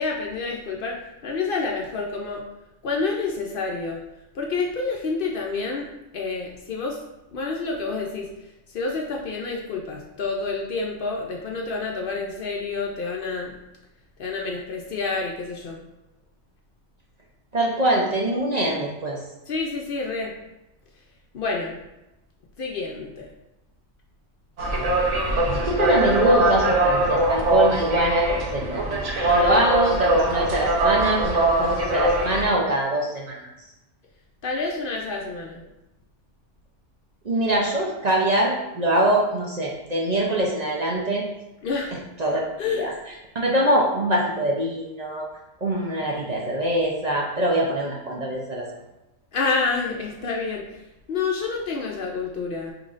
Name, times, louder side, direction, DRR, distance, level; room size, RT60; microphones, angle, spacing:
voice 1, 0.0-2.4 2.8-4.0 4.3-7.0 7.3-13.5 14.2-15.8 19.5-20.3 21.3-21.8 22.6-23.3 34.4-35.7 41.6-42.0 42.6-42.9 49.3-52.7, left 4 dB, 60° left, 0 dB, 0.6 m, -28 dB
voice 2, 17.5-19.2 25.6-28.8 29.2-33.4 37.2-41.2 42.2-42.4 42.7-42.9 43.3-45.3 45.6-48.7, right 1 dB, 45° right, -2 dB, 0.6 m, -23 dB
sound 1, 24.6-32.5, right 1 dB, 80° right, 1.2 m, -22 dB
6.1 x 3.1 x 2.4 m, 0.94 s
omnidirectional pair, 1.2 m